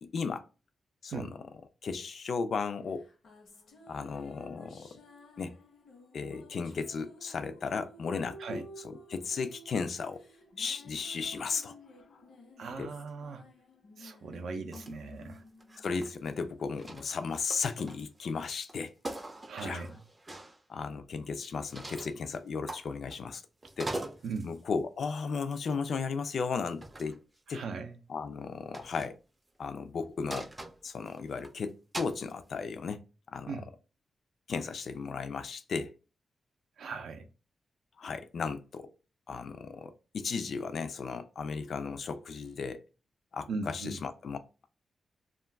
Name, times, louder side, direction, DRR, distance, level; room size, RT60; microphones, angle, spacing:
voice 1, 0.0-0.4 1.0-1.3 1.8-3.1 3.9-5.0 5.4-5.5 6.1-10.2 10.6-11.7 12.1-12.2 12.8-12.9 15.8-18.9 19.6-19.8 20.7-23.4 23.8-23.9 24.4-27.2 27.5-27.6 28.1-29.2 29.6-30.5 30.8-33.0 33.3-33.7 34.5-35.9 38.0-38.9 39.3-42.8 43.3-44.7, left 5 dB, 60° left, 0.3 m, -35 dB
sound 1, 2.9-16.6, equal, 80° left, 0.8 m, -53 dB
voice 2, 12.6-13.5 14.0-15.4 19.5-20.0 24.2-24.5 27.5-28.0 33.5-33.7 36.8-37.3 43.5-44.0, right 4 dB, 85° right, 0.4 m, -39 dB
sound 2, 14.7-14.9 15.2-16.4 16.7-18.2 18.6-18.7 19.0-20.6 21.7-22.2 22.7-23.3 23.6-24.6 25.7-25.9 26.7-27.2 28.7-29.1 30.3-31.5 31.9-32.2, right 1 dB, 20° right, 0.4 m, -42 dB
2.3 x 2.2 x 3.3 m
wide cardioid pair, 130°, 0 cm